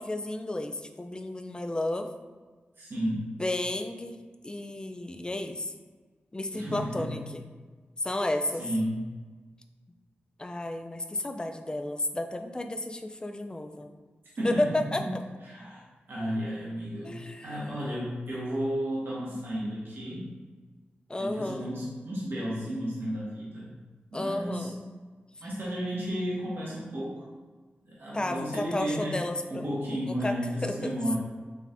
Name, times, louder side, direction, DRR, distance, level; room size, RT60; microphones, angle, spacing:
voice 1, 0.0-2.1 3.1-4.2 4.4-5.7 6.3-7.4 8.0-8.6 10.4-14.0 14.4-15.0 17.0-17.6 21.1-21.7 24.1-24.8 28.1-29.7 30.2-30.3 30.6-31.2, left 1 dB, 20° left, 6 dB, 0.4 m, -32 dB
voice 2, 2.8-3.2 6.5-7.2 8.6-9.1 14.4-15.2 15.4-15.8 16.1-17.2 17.4-20.3 21.2-23.7 24.1-24.7 25.4-27.2 27.8-29.2 29.5-31.2, equal, 65° right, -7 dB, 1.3 m, -33 dB
4.8 x 3.3 x 2.5 m, 1.4 s
cardioid pair, 60°, 4 cm